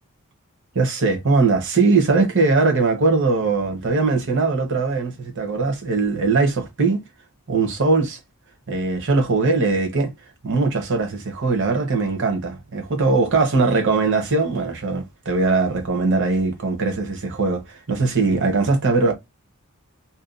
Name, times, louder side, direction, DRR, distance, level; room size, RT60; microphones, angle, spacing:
voice 1, 0.7-7.0 7.5-8.2 8.7-10.1 10.4-19.1, right 3 dB, 55° right, 0.9 m, -20 dB
2.7 x 2.2 x 2.4 m
head